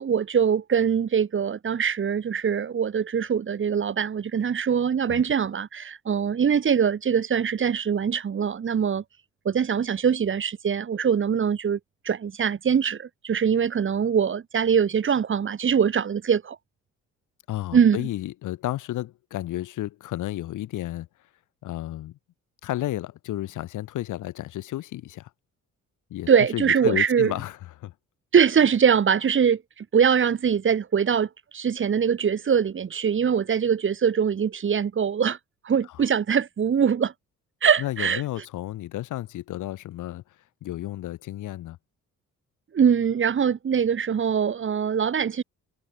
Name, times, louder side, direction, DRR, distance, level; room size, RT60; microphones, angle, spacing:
voice 1, 0.0-9.0 9.4-11.8 12.0-16.6 17.7-18.1 26.3-27.3 28.3-35.4 35.6-37.1 37.6-38.2 42.7-45.4, right 7 dB, 40° right, 1.5 m, -23 dB
voice 2, 17.5-21.1 21.6-22.2 22.6-25.3 26.1-27.9 35.9-36.0 37.8-40.2 40.6-41.8, left 14 dB, 85° left, 3.1 m, -32 dB
cardioid pair, 90°, 30 cm